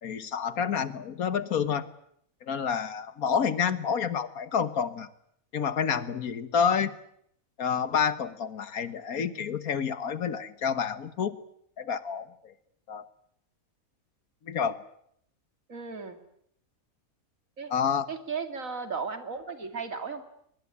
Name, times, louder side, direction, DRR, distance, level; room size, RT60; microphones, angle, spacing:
voice 1, 0.0-1.9 2.4-5.1 5.5-6.9 7.6-11.4 11.8-12.5 12.9-13.0 14.5-14.8 17.7-18.1, left 7 dB, 85° left, 14 dB, 1.8 m, -29 dB
voice 2, 15.7-16.2 17.6-17.7 18.1-20.2, right 5 dB, 70° right, 8 dB, 2.9 m, -35 dB
23.5 x 20.5 x 9.7 m, 0.71 s
omnidirectional pair, 1.5 m